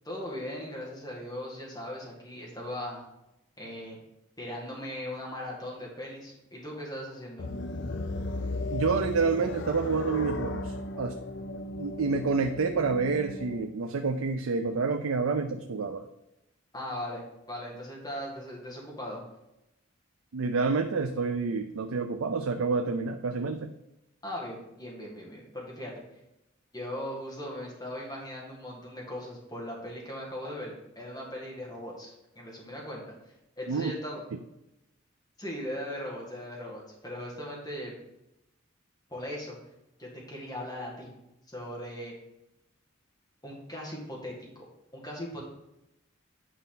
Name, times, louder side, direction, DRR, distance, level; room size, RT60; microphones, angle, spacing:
voice 1, 0.0-3.0 3.6-4.0 4.4-7.5 16.7-19.2 24.2-25.9 26.7-33.0 33.6-34.2 35.4-37.9 39.1-39.6 40.0-41.1 41.5-42.1 43.4-44.6 44.9-45.5, left 1 dB, 20° left, -3 dB, 1.9 m, -39 dB
sound 1, 7.4-13.6, left 2 dB, 60° left, 0.5 m, -35 dB
voice 2, 8.7-11.1 11.8-16.0 20.3-23.7 33.7-33.9, right 4 dB, 85° right, 6 dB, 0.5 m, -28 dB
9.4 x 5.5 x 3.9 m, 0.90 s
head